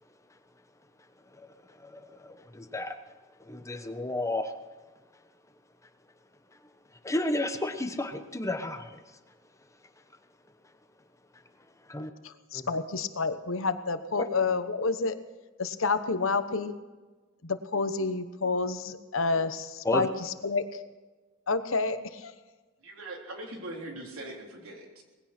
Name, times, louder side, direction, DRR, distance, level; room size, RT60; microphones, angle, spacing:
voice 1, 1.3-3.0 3.4-4.5 7.0-9.2 11.8-12.1 12.5-12.7 14.2-14.3 19.8-20.1, left 2 dB, 15° left, 7 dB, 1.1 m, -32 dB
voice 2, 12.2-15.1 15.6-16.7 17.4-20.1 20.4-20.8 21.5-22.3, left 4 dB, 70° left, 10 dB, 1.1 m, -29 dB
voice 3, 22.8-25.0, right 1 dB, 85° right, 1 dB, 3.6 m, -41 dB
20.0 x 16.0 x 4.4 m, 1.3 s
head